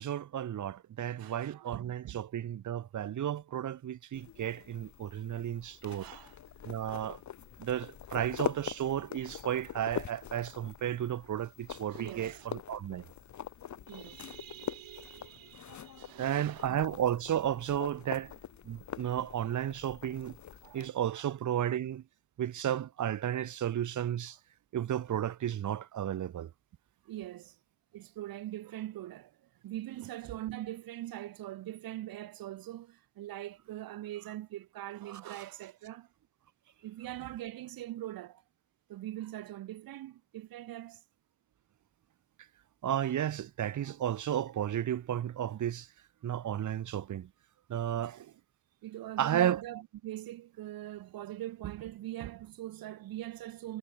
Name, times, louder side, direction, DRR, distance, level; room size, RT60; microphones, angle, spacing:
voice 1, 0.0-6.1 6.6-7.2 7.6-13.0 16.2-18.3 18.6-20.4 20.7-22.0 22.4-24.4 24.7-26.5 35.3-35.4 42.8-45.9 46.2-47.3 47.7-48.3 49.2-49.6, right 10 dB, 55° right, 1.4 m, -33 dB
voice 2, 1.2-2.2 5.8-6.7 11.9-12.5 13.9-16.8 20.6-20.8 21.1-21.2 27.0-27.6 27.9-29.3 29.6-36.1 36.8-38.4 38.9-41.0 47.9-48.3 48.8-53.8, right 14 dB, 75° right, 4.5 m, -42 dB
sound 1, 4.1-20.9, left 9 dB, 55° left, 1.7 m, -44 dB
supercardioid pair, 70°, 35 cm